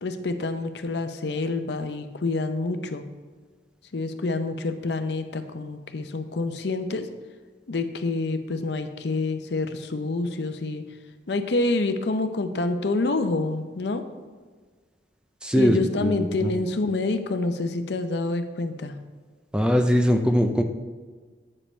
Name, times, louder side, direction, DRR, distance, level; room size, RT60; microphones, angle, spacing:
voice 1, 0.0-3.1 3.9-7.1 7.7-10.8 11.3-14.0 15.5-19.0, left 3 dB, 70° left, 8 dB, 0.6 m, -27 dB
voice 2, 15.4-16.1 16.4-16.5 19.5-20.6, equal, 5° right, 5 dB, 0.4 m, -21 dB
8.6 x 5.2 x 4.3 m, 1.5 s
head